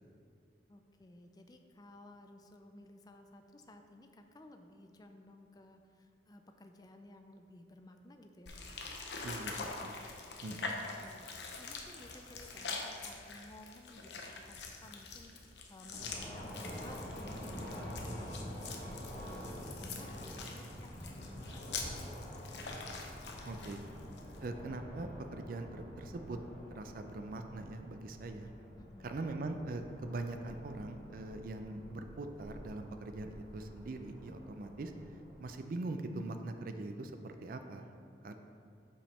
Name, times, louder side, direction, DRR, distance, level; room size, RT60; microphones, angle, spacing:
voice 1, 0.7-8.7 10.6-22.5 28.8-29.2, left 1 dB, 20° left, 6 dB, 0.4 m, -56 dB
sound 1, 8.5-24.5, left 4 dB, 70° left, 0.7 m, -45 dB
voice 2, 9.2-10.0 10.4-10.7 23.5-23.9 24.4-26.4 26.7-28.5 29.0-34.9 35.4-37.9 38.2-38.4, right 2 dB, 50° right, 6 dB, 0.4 m, -42 dB
sound 2, 15.9-35.6, equal, 50° left, 1.5 m, -47 dB
5.4 x 5.2 x 4.2 m, 2.5 s
head